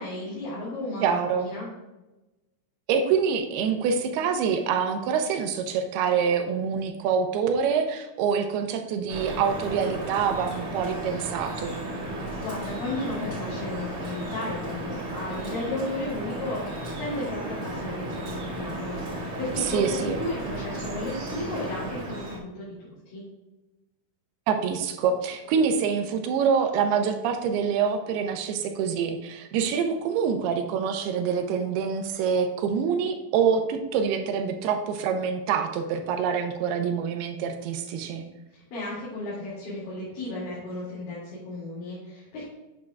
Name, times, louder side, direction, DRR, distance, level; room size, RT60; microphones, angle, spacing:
voice 1, 0.0-1.7 12.4-16.6 17.0-23.2 38.5-42.4, left 2 dB, 60° left, -9 dB, 4.0 m, -34 dB
voice 2, 1.0-1.5 2.9-11.8 19.6-20.2 24.5-38.2, right 6 dB, 80° right, 6 dB, 2.6 m, -26 dB
Drip, 9.1-22.4, right 1 dB, 40° right, 2.3 m, -34 dB
8.6 x 8.4 x 2.3 m, 1.0 s
omnidirectional pair, 4.7 m